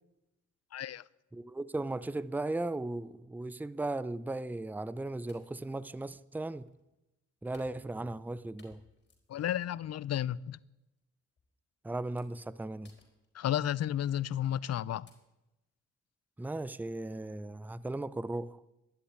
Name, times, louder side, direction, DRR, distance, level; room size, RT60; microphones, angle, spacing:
voice 1, 0.7-1.0 9.3-10.6 13.3-15.1, left 11 dB, 60° left, 0.5 m, -32 dB
voice 2, 1.3-6.7 7.4-8.8 11.8-12.9 16.4-18.6, right 2 dB, 5° right, 0.6 m, -37 dB
sound 1, 4.4-4.7 5.3-6.8 7.5-8.3 8.6-9.8 10.3-10.5 11.4-11.5 12.2-12.5 12.8-13.8 14.5-14.7 15.1-15.2, left 3 dB, 35° left, 4.3 m, -64 dB
13.0 x 11.5 x 9.6 m
cardioid pair, 80°, 30 cm